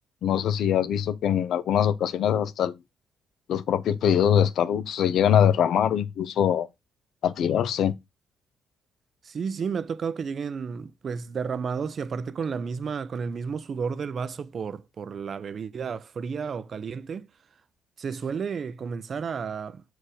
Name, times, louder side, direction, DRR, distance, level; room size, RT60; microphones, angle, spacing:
voice 1, 0.2-2.8 3.5-6.7 7.2-7.9, left 9 dB, 70° left, 0.7 m, -23 dB
voice 2, 9.2-17.3 18.0-19.8, right 6 dB, 50° right, 0.6 m, -32 dB
6.4 x 4.7 x 4.9 m
cardioid pair, 90°, 0 cm